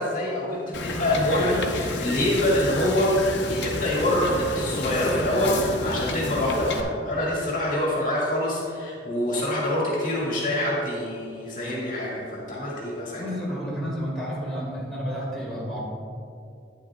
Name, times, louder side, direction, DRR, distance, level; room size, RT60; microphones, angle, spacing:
voice 1, 0.0-13.2, left 1 dB, 45° left, -5 dB, 2.1 m, -25 dB
Wind / Boat Water vehicle, 0.7-6.8, left 2 dB, 90° left, 0.8 m, -31 dB
voice 2, 13.2-15.8, equal, 5° left, -7 dB, 2.2 m, -31 dB
11.0 x 9.8 x 2.4 m, 2.5 s
head